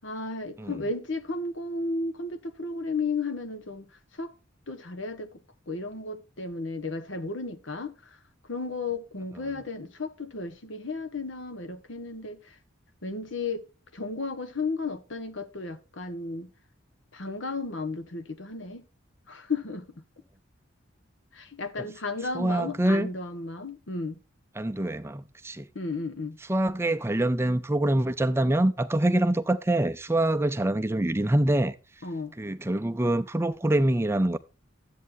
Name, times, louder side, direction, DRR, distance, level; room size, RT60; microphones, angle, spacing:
voice 1, 0.0-4.3 4.7-5.4 5.7-12.6 13.0-13.6 13.9-16.5 17.1-18.8 19.3-20.0 21.3-24.2 25.7-26.4 32.0-32.4, left 3 dB, 70° left, 1.3 m, -34 dB
voice 2, 22.3-23.1 24.6-25.7 26.5-31.8 32.4-34.4, right 1 dB, 15° right, 0.4 m, -25 dB
13.0 x 8.4 x 2.6 m
head